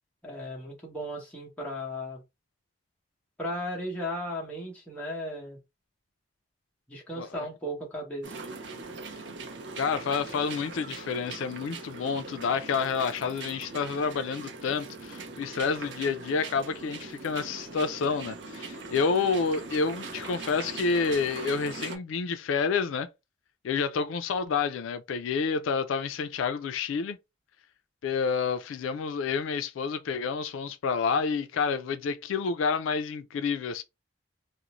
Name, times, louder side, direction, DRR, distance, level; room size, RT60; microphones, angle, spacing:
voice 1, 0.2-2.2 3.4-5.6 6.9-8.4, equal, 5° left, 0.8 m, -36 dB
sound 1, 8.2-22.0, right 3 dB, 65° right, 0.5 m, -41 dB
voice 2, 9.8-23.1 23.6-27.2 28.0-33.8, left 5 dB, 85° left, 0.3 m, -29 dB
2.5 x 2.0 x 2.9 m
head